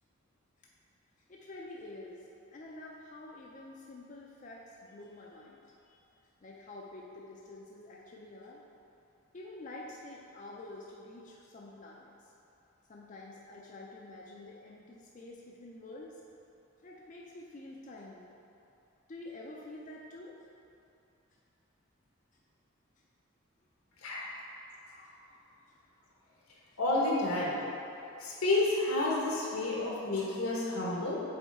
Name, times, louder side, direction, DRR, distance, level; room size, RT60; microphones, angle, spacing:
voice 1, 1.3-6.0 6.4-8.6 9.3-12.3 12.9-16.2 16.8-18.3 19.1-20.4, left 2 dB, 35° left, -3 dB, 0.4 m, -48 dB
voice 2, 26.8-27.6 28.2-31.2, left 2 dB, 85° left, -5 dB, 1.3 m, -30 dB
7.0 x 4.1 x 3.5 m, 2.8 s
head